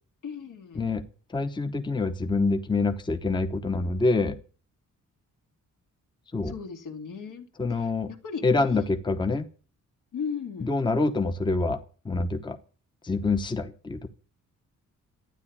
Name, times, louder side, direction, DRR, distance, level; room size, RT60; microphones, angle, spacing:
voice 1, 0.2-0.9 6.4-8.8 10.1-10.7, left 6 dB, 70° left, 5 dB, 2.6 m, -37 dB
voice 2, 1.3-4.4 6.3-6.5 7.6-8.1 8.4-9.5 10.6-11.8 12.0-12.6 13.0-14.1, left 3 dB, 15° left, 8 dB, 0.9 m, -26 dB
13.0 x 9.8 x 8.5 m, 0.39 s
wide cardioid pair, 170°, 33 cm